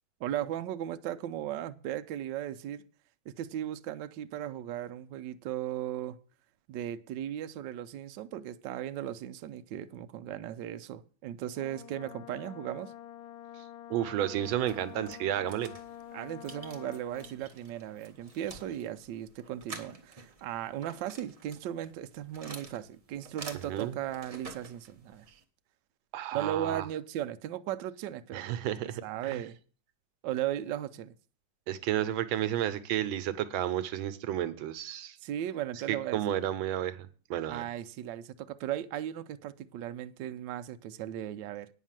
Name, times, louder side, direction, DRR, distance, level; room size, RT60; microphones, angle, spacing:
voice 1, 0.2-2.8 3.3-6.2 6.7-12.9 16.1-25.3 26.3-28.5 29.0-29.6 30.2-31.1 35.2-36.3 37.5-41.7, right 11 dB, 70° right, 1.2 m, -37 dB
Brass instrument, 11.5-17.4, left 11 dB, 85° left, 1.5 m, -47 dB
voice 2, 13.9-15.7 23.7-24.0 26.1-26.9 28.3-29.0 29.3-29.4 31.7-35.2 35.9-37.6, right 11 dB, 85° right, 1.6 m, -32 dB
sound 1, 14.4-25.4, right 3 dB, 25° right, 0.9 m, -49 dB
9.3 x 6.3 x 7.4 m
omnidirectional pair, 2.2 m